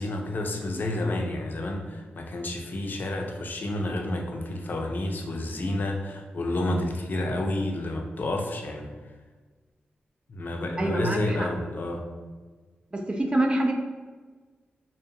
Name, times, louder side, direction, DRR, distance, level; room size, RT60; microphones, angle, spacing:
voice 1, 0.0-8.9 10.3-12.1, left 1 dB, 55° left, 2 dB, 0.4 m, -30 dB
voice 2, 10.8-11.5 12.9-13.7, right 1 dB, 25° right, 2 dB, 0.4 m, -26 dB
2.6 x 2.1 x 2.7 m, 1.4 s
cardioid pair, 65°, 4 cm